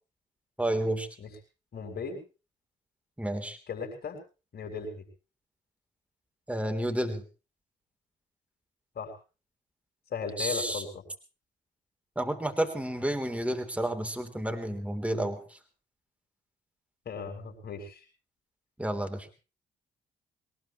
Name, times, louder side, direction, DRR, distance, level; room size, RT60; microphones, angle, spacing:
voice 1, 0.6-1.1 3.2-3.6 6.5-7.2 10.4-10.8 12.2-15.6 18.8-19.3, right 1 dB, 5° right, 7 dB, 3.4 m, -30 dB
voice 2, 1.7-2.2 3.7-4.2 4.5-5.0 8.9-9.1 10.1-11.0 17.0-18.1, left 5 dB, 55° left, 3 dB, 6.6 m, -37 dB
22.0 x 19.5 x 3.1 m, 0.34 s
hypercardioid pair, 45°, 20 cm